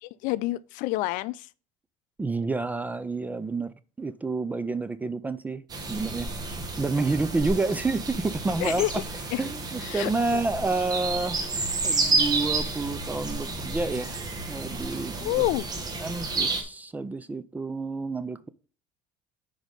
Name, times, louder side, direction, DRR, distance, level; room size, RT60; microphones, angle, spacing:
voice 1, 0.0-1.5 8.6-9.0 9.3-9.4 9.8-10.4 15.2-15.7, left 18 dB, 75° left, 0.5 m, -28 dB
voice 2, 2.2-5.6 5.9-6.3 6.8-8.8 9.4-11.4 11.8-14.2 14.5-15.3 16.0-18.5, right 3 dB, 10° right, 0.3 m, -29 dB
sound 1, 5.7-16.6, right 3 dB, 30° right, 1.5 m, -30 dB
6.2 x 5.0 x 5.2 m
cardioid pair, 150°, 14 cm